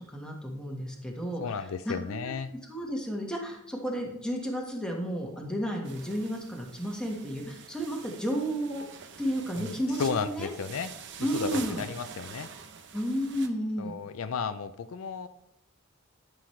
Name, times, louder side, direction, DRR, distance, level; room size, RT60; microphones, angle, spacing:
voice 1, 0.1-2.3 2.7-8.8 9.2-10.5 11.2-11.9 12.9-13.9, equal, 5° left, -1 dB, 1.4 m, -32 dB
voice 2, 1.4-2.5 9.6-10.9 11.2-12.5 13.8-15.3, left 5 dB, 70° left, 11 dB, 0.4 m, -33 dB
sound 1, 5.8-13.5, right 6 dB, 55° right, 0.8 m, -45 dB
11.5 x 6.2 x 3.2 m, 0.83 s
head